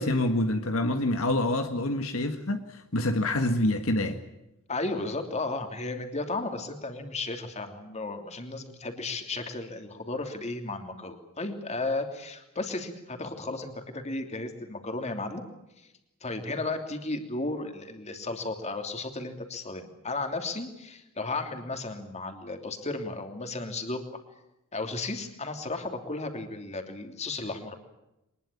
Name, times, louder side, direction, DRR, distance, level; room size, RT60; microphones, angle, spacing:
voice 1, 0.0-4.2, left 1 dB, 70° left, 1.7 m, -27 dB
voice 2, 4.7-15.4 16.2-24.2 24.7-27.8, left 2 dB, 30° left, 3.0 m, -34 dB
24.0 x 20.5 x 8.5 m
head